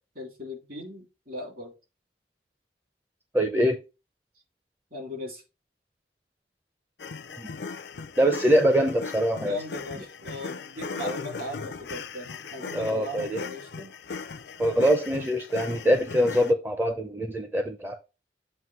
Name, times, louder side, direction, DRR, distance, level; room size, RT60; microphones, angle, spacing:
voice 1, 0.1-1.7 4.9-5.4 9.3-13.9, left 1 dB, 55° right, 0 dB, 2.9 m, -38 dB
voice 2, 3.3-3.8 7.4-7.5 8.2-9.6 11.0-11.2 12.7-13.4 14.6-18.0, equal, 10° right, 5 dB, 0.6 m, -23 dB
sound 1, 7.0-16.5, left 4 dB, 70° left, 0.5 m, -38 dB
7.7 x 2.6 x 5.5 m, 0.29 s
head